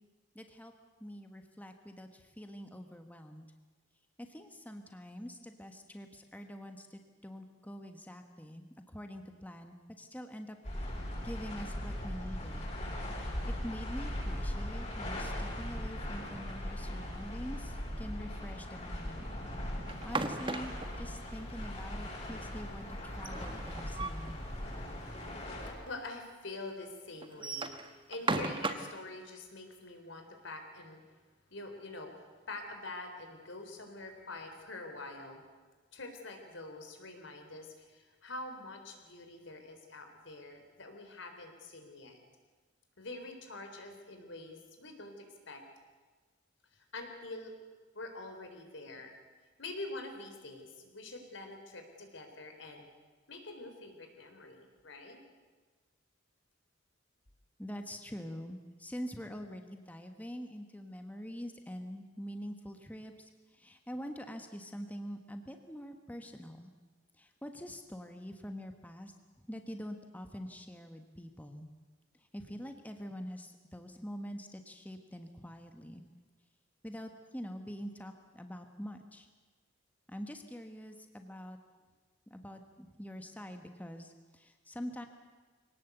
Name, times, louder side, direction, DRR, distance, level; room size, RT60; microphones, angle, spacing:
voice 1, 0.3-0.7 1.0-3.5 4.3-10.9 11.2-12.7 13.1-19.3 20.0-24.4 57.6-66.7 67.2-69.1 69.5-71.7 72.3-76.0 76.8-79.3 80.1-81.6 82.3-85.1, equal, 10° left, 5 dB, 1.3 m, -45 dB
sound 1, 10.6-25.7, left 1 dB, 35° left, 7.5 m, -39 dB
sound 2, 19.9-21.0 23.1-24.3 24.7-24.8 25.1-25.2 25.9-26.0 27.2-29.0, right 3 dB, 25° right, 1.3 m, -36 dB
voice 2, 25.6-31.0 31.5-35.4 35.9-42.2 43.0-45.6 46.7-47.5 47.9-49.1 49.6-52.9 53.3-55.2, left 2 dB, 80° left, 5 dB, 3.9 m, -46 dB
23.5 x 18.0 x 8.1 m, 1.4 s
head